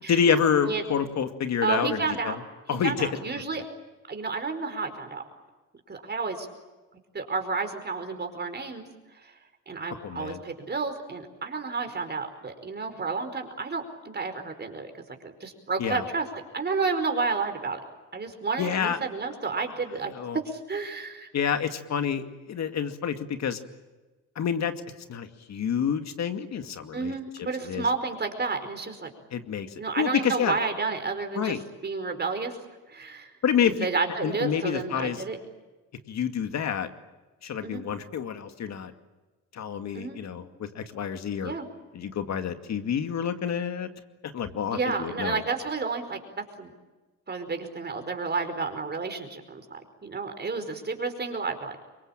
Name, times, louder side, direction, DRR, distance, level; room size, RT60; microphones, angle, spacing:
voice 1, 0.1-2.4 2.7-3.1 3.5-3.6 10.0-10.4 15.8-16.0 18.6-19.0 20.1-20.4 21.3-23.6 24.4-24.7 25.1-27.1 27.6-27.8 29.3-30.5 31.4-31.6 33.4-33.9 34.2-35.2 36.1-36.9 37.4-38.9 39.5-41.5 41.9-43.9 44.2-45.4, left 7 dB, 60° left, 8 dB, 2.3 m, -28 dB
voice 2, 1.6-2.4 2.7-3.6 4.1-5.2 5.9-6.5 7.1-8.8 9.2-9.3 9.7-14.9 15.2-16.3 16.5-17.8 18.1-21.3 26.9-29.1 29.8-32.6 32.9-33.3 33.6-35.4 37.6-37.8 39.9-40.2 41.4-41.7 44.7-46.7 47.3-49.6 50.0-51.7, right 4 dB, 35° right, 6 dB, 4.9 m, -31 dB
25.0 x 22.5 x 8.9 m, 1.2 s
cardioid pair, 90°, 30 cm